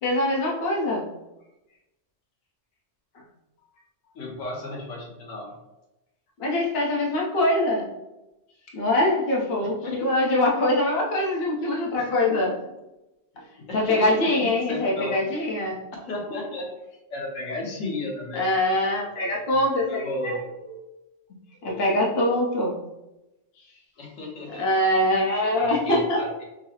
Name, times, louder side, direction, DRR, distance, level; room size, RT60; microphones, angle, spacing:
voice 1, 0.0-1.1 6.4-7.9 8.7-12.5 13.7-15.8 18.4-20.3 21.6-22.8 24.6-26.2, left 1 dB, 55° left, -3 dB, 1.0 m, -23 dB
voice 2, 4.1-5.5 9.8-10.0 11.9-12.5 13.6-15.4 16.1-16.7 17.1-18.5 19.3-20.8 21.6-22.4 24.0-24.7 25.6-26.4, left 1 dB, 85° left, -1 dB, 1.3 m, -34 dB
5.4 x 2.0 x 2.8 m, 0.97 s
omnidirectional pair, 1.3 m